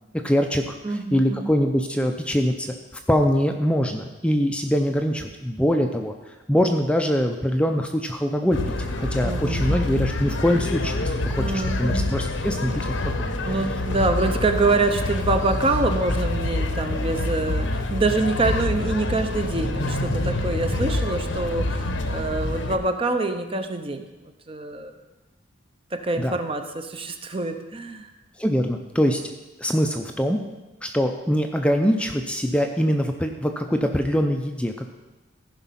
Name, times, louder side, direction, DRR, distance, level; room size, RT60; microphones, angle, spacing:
voice 1, 0.2-0.8 1.1-2.7 3.1-6.1 6.5-8.6 9.0-13.2 13.4-13.5 26.2-26.4 28.4-29.2 29.6-30.4 30.8-34.9, equal, 5° left, 4 dB, 0.5 m, -23 dB
voice 2, 0.8-1.5 9.2-9.9 11.4-12.2 13.4-24.9 25.9-28.1, right 3 dB, 30° right, 7 dB, 0.7 m, -26 dB
sound 1, 8.5-22.8, left 2 dB, 75° left, 0.9 m, -26 dB
15.0 x 5.2 x 5.8 m, 1.1 s
head